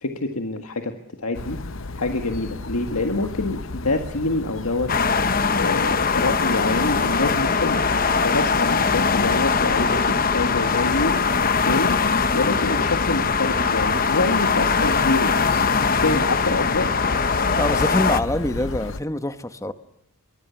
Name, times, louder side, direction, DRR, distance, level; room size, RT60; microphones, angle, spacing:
voice 1, 0.0-1.6 1.9-4.9 5.6-7.9 8.2-11.2 11.7-12.0 12.3-15.7 16.0-16.9, left 2 dB, 85° left, 5 dB, 1.8 m, -26 dB
sound 1, 1.3-19.0, left 2 dB, 60° left, 0.9 m, -33 dB
sound 2, 4.9-18.2, left 5 dB, 40° left, 1.0 m, -21 dB
voice 2, 17.5-19.7, left 1 dB, 15° left, 10 dB, 1.1 m, -25 dB
24.0 x 23.5 x 7.1 m, 0.75 s
head